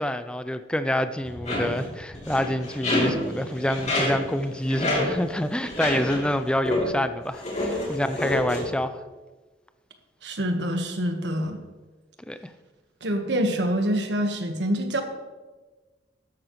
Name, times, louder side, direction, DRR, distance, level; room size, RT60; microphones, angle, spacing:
voice 1, 0.0-9.0 12.3-12.4, left 1 dB, 5° left, 10 dB, 0.4 m, -27 dB
sound 1, 1.2-6.4 6.6-7.0 7.3-8.6, left 1 dB, 40° left, 3.0 m, -28 dB
voice 2, 10.2-11.6 13.0-15.0, equal, 80° right, 5 dB, 1.4 m, -26 dB
13.5 x 11.0 x 3.1 m, 1.3 s
head